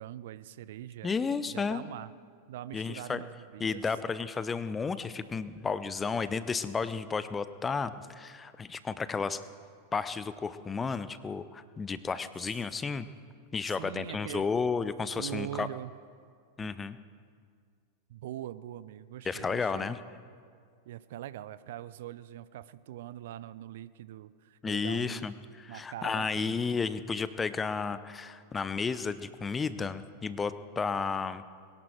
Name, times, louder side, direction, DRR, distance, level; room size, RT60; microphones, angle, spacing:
voice 1, 0.0-1.1 1.5-2.1 2.5-3.8 13.7-14.5 15.2-16.0 16.6-16.7 18.1-19.9 20.9-25.2 25.7-26.6, right 12 dB, 55° right, 16 dB, 0.4 m, -42 dB
voice 2, 1.0-1.8 2.7-3.2 3.6-9.4 9.9-13.1 13.5-15.7 16.6-17.0 19.2-20.0 24.6-31.4, left 5 dB, 15° left, 14 dB, 0.6 m, -32 dB
21.5 x 11.0 x 4.7 m, 2.1 s
figure-of-eight pair, 90°, 0 cm